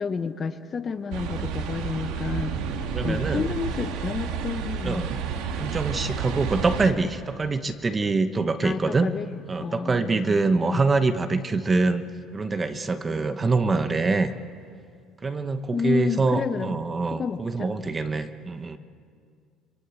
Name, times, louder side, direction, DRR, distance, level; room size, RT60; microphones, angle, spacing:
voice 1, 0.0-2.5 3.0-5.1 8.6-10.4 10.7-10.8 15.7-16.8 17.1-17.7, left 5 dB, 25° left, 10 dB, 1.0 m, -30 dB
sound 1, 1.1-6.9, right 6 dB, 75° right, 2.2 m, -30 dB
voice 2, 2.9-3.5 4.8-5.2 5.5-9.1 9.5-12.0 12.3-14.3 15.2-18.8, right 3 dB, 20° right, 9 dB, 1.0 m, -25 dB
25.0 x 24.0 x 8.3 m, 2.3 s
cardioid pair, 155°, 0 cm